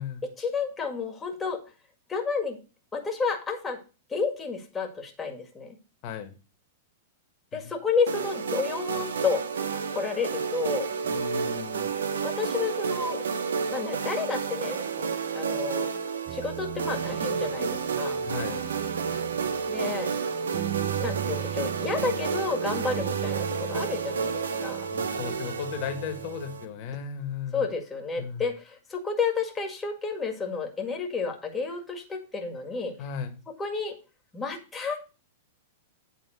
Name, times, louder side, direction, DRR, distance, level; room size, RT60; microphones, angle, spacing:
voice 1, 0.2-1.6 2.1-2.6 2.9-3.8 4.1-5.7 7.5-9.4 9.9-10.9 12.2-13.2 13.7-15.1 15.3-15.9 16.3-18.2 19.7-20.1 21.0-24.9 27.5-32.9 33.6-33.9 34.3-35.1, left 5 dB, 15° left, 4 dB, 1.8 m, -31 dB
sound 1, 8.1-26.6, right 5 dB, 80° right, 0.8 m, -31 dB
voice 2, 11.0-11.9 18.2-18.7 24.9-27.7 28.2-28.5 33.0-33.3, left 7 dB, 45° left, 6 dB, 1.6 m, -35 dB
sound 2, 16.3-27.0, right 12 dB, 45° right, 1.2 m, -38 dB
8.7 x 3.8 x 6.2 m, 0.33 s
hypercardioid pair, 110°, 0 cm